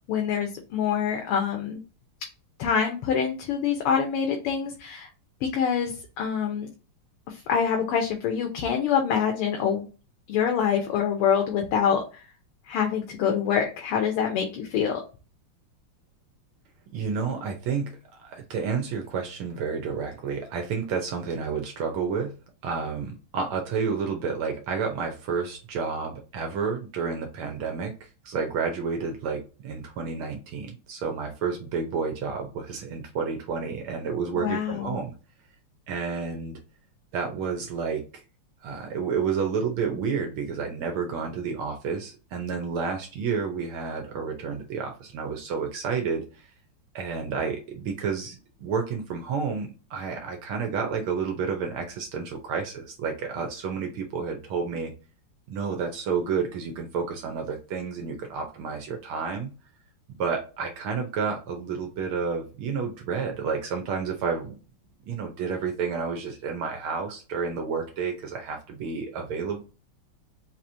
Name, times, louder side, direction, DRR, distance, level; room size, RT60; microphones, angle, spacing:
voice 1, 0.1-1.8 2.6-5.1 5.4-6.7 7.3-9.8 10.3-12.2 12.7-15.0 34.3-35.0, left 7 dB, 85° left, 2 dB, 1.7 m, -25 dB
voice 2, 16.9-22.3 22.6-35.1 35.9-36.6 37.1-38.2 38.6-46.5 46.9-54.9 55.5-59.5 60.1-64.5 65.0-69.6, right 5 dB, 75° right, 4 dB, 1.6 m, -30 dB
4.7 x 2.9 x 2.6 m, 0.33 s
omnidirectional pair, 2.4 m